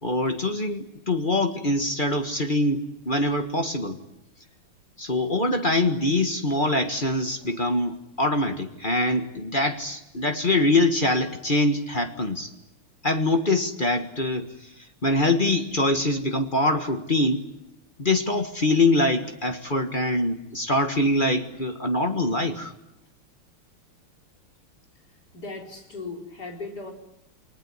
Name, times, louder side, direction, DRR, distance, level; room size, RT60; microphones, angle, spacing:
voice 1, 0.0-4.0 5.0-12.5 13.0-14.5 15.0-17.4 18.0-22.7, left 2 dB, 25° left, 6 dB, 1.6 m, -24 dB
voice 2, 7.4-7.8 25.3-26.9, left 3 dB, 45° left, 1 dB, 4.7 m, -38 dB
29.0 x 20.5 x 9.9 m, 0.89 s
omnidirectional pair, 2.4 m